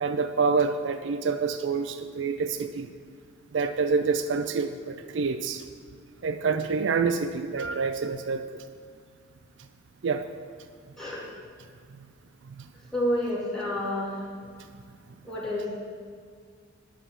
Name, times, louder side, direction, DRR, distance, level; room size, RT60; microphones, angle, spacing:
voice 1, 0.0-2.9 3.5-5.6 6.2-8.6 10.0-10.3 12.5-12.6, right 5 dB, 60° right, 9 dB, 0.4 m, -27 dB
voice 2, 12.9-14.2 15.2-15.8, left 1 dB, 5° left, -8 dB, 2.7 m, -29 dB
10.0 x 6.8 x 7.4 m, 2.1 s
head